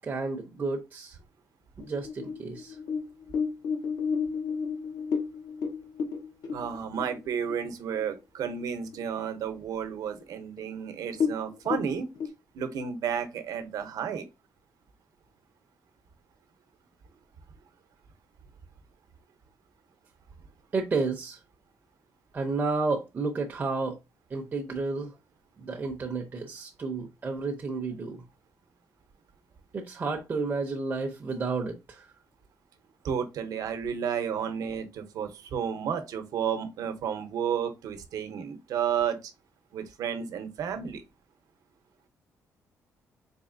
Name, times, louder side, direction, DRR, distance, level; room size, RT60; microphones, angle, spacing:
voice 1, 0.0-1.2 1.8-2.8 20.7-21.4 22.3-24.0 24.3-25.1 25.6-28.2 29.7-32.1, right 3 dB, 30° right, 0.6 m, -31 dB
sound 1, 1.8-7.7 8.0-8.1 8.5-9.0 9.4-9.5 10.2-10.3 10.6-10.7 11.1-12.3, left 5 dB, 80° left, 0.8 m, -31 dB
voice 2, 6.5-12.1 12.5-14.3 33.0-39.3 39.7-41.0, right 7 dB, 75° right, 0.8 m, -32 dB
4.1 x 3.1 x 2.5 m
cardioid pair, 135°, 6 cm